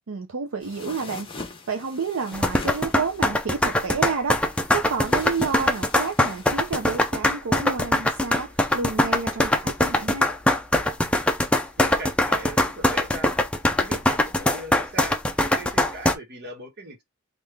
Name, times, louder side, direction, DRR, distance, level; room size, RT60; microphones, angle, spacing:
voice 1, 0.1-4.4 4.7-10.3, right 5 dB, 80° right, 0.6 m, -30 dB
sound 1, 0.6-7.2, left 3 dB, 25° left, 0.9 m, -43 dB
sound 2, 2.3-16.1, left 1 dB, 5° left, 0.5 m, -22 dB
voice 2, 11.8-13.3 13.7-17.0, right 1 dB, 55° right, 1.3 m, -38 dB
3.7 x 2.5 x 3.3 m
head